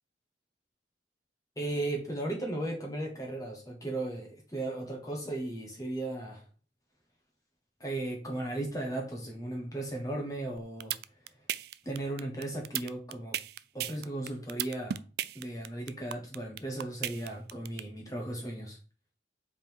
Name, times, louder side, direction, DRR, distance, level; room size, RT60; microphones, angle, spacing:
voice 1, 1.6-6.4 7.8-11.0 11.8-13.4 13.7-15.0 15.3-18.8, right 1 dB, 20° left, 1.2 m, -36 dB
sound 1, 10.6-17.8, right 11 dB, 55° right, 0.3 m, -34 dB
7.4 x 3.7 x 4.6 m
head